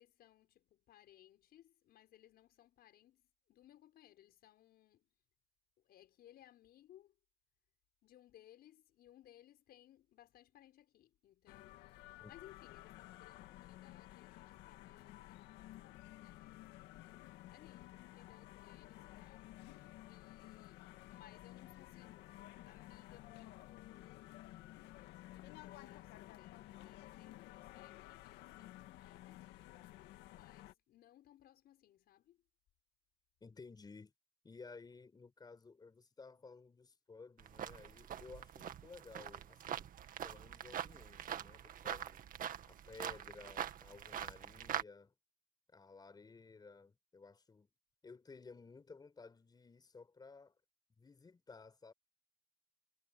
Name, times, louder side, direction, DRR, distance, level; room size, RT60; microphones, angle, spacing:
voice 1, 0.0-5.1 5.8-7.2 8.0-16.6 17.4-24.5 25.2-29.8 30.3-32.4, left 12 dB, 65° left, 6.7 m, -64 dB
sound 1, 11.5-30.7, left 15 dB, 90° left, 1.8 m, -54 dB
voice 2, 33.4-34.1 34.4-39.9 40.2-42.2 42.7-45.1 45.7-47.7 48.0-50.6 51.0-51.9, left 4 dB, 25° left, 4.8 m, -56 dB
sound 2, 37.4-44.8, right 9 dB, 55° right, 2.0 m, -44 dB
cardioid pair, 110°, 17 cm